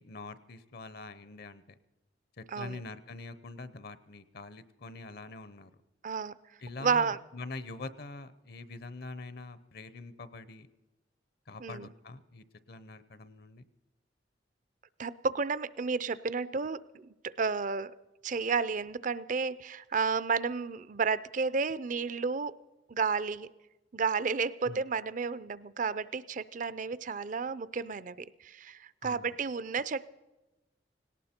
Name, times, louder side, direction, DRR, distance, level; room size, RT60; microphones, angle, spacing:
voice 1, 0.0-1.6 2.4-5.7 6.6-10.7 11.5-13.7 24.7-24.8 29.0-29.4, left 3 dB, 60° left, 15 dB, 0.8 m, -44 dB
voice 2, 2.5-2.8 6.0-6.3 6.8-7.2 11.6-11.9 15.0-17.9 18.2-22.5 22.9-23.5 23.9-30.1, right 5 dB, 45° right, 17 dB, 0.5 m, -32 dB
18.0 x 18.0 x 4.4 m, 1.1 s
head